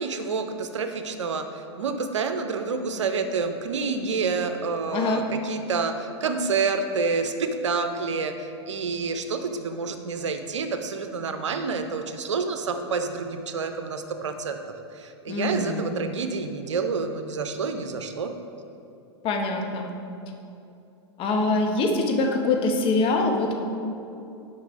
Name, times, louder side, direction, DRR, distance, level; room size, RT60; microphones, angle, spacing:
voice 1, 0.0-14.6 14.9-18.3, right 4 dB, 85° right, 7 dB, 0.5 m, -28 dB
voice 2, 4.9-5.3 15.3-15.9 19.2-19.9 21.2-23.5, left 3 dB, 35° left, 2 dB, 0.9 m, -24 dB
5.4 x 5.3 x 5.1 m, 2.7 s
hypercardioid pair, 100°, 15 cm